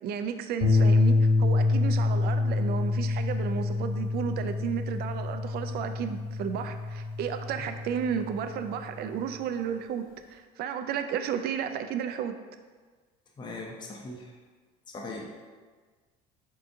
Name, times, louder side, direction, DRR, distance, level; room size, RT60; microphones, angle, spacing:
voice 1, 0.0-12.4, right 8 dB, 55° right, 8 dB, 0.4 m, -33 dB
sound 1, 0.6-9.0, left 3 dB, 45° left, 1.3 m, -26 dB
voice 2, 13.4-14.3 14.9-15.3, left 2 dB, 25° left, -1 dB, 0.6 m, -39 dB
4.2 x 3.7 x 2.7 m, 1.5 s
supercardioid pair, 85°, 19 cm